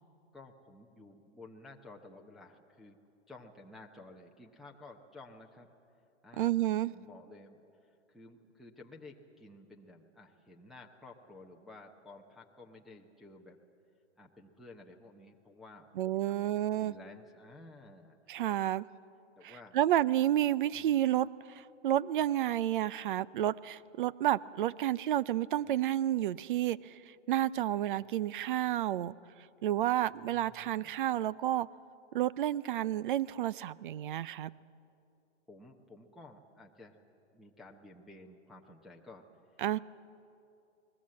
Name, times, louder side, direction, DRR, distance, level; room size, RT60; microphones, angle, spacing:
voice 1, 0.3-3.0 3.3-5.7 6.2-13.6 14.2-18.2 19.4-19.8 20.7-21.0 30.1-31.0 35.5-37.0 37.3-39.2 39.5-39.8, left 2 dB, ahead, -3 dB, 0.7 m, -54 dB
voice 2, 6.4-6.9 16.0-16.9 18.3-18.8 19.4-26.9 27.3-29.2 29.6-31.7 32.1-34.5 39.6-39.8, right 12 dB, 45° right, 20 dB, 0.6 m, -30 dB
30.0 x 20.5 x 7.6 m, 2.6 s
hypercardioid pair, 155°, 37 cm